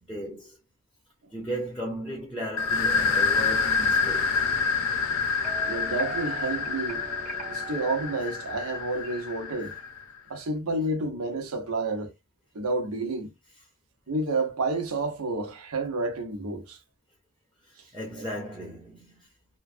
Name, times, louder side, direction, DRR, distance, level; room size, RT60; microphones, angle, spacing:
voice 1, 0.1-0.6 1.3-4.5 17.7-19.3, equal, ahead, 0.7 m, -36 dB
sound 1, 2.6-10.0, left 5 dB, 60° left, 0.6 m, -27 dB
sound 2, 5.4-9.4, right 3 dB, 35° right, 0.9 m, -42 dB
voice 2, 5.6-7.1 7.5-9.8 10.3-12.1 12.5-13.3 14.1-16.8 18.2-18.3, right 2 dB, 80° right, 0.9 m, -30 dB
3.1 x 2.2 x 2.5 m
head